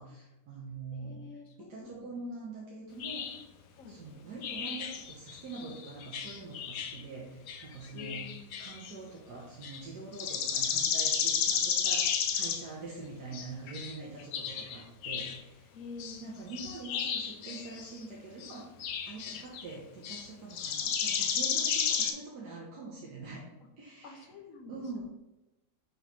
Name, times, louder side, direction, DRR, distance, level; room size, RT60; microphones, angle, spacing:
voice 1, 0.0-1.3 1.6-3.4 3.9-8.3 8.6-15.7 16.2-23.4 23.8-24.3 24.7-25.0, right 3 dB, 80° right, -4 dB, 1.6 m, -44 dB
voice 2, 0.9-2.1 3.8-4.0 7.9-8.6 12.7-12.8 15.7-16.2 21.4-21.6 24.0-25.0, left 4 dB, 60° left, 3 dB, 1.2 m, -48 dB
sound 1, 3.0-3.4 4.4-7.0 7.5-8.9 9.6-9.8 10.1-12.7 13.3-15.4 16.0-16.2 16.5-18.0 18.4-19.7 20.0-20.3 20.5-22.1, left 7 dB, 90° left, 1.3 m, -32 dB
6.2 x 3.1 x 5.3 m, 0.97 s
omnidirectional pair, 1.8 m